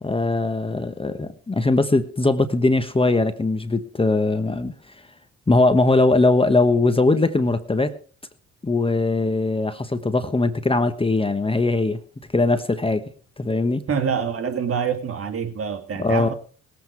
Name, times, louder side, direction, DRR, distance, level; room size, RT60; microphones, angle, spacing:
voice 1, 0.0-4.7 5.5-7.9 8.6-12.0 12.3-13.0 13.4-13.8 16.0-16.3, left 2 dB, 20° left, 1.2 m, -20 dB
voice 2, 13.9-16.3, right 6 dB, 50° right, 2.5 m, -26 dB
20.0 x 8.4 x 4.6 m
cardioid pair, 90°, 30 cm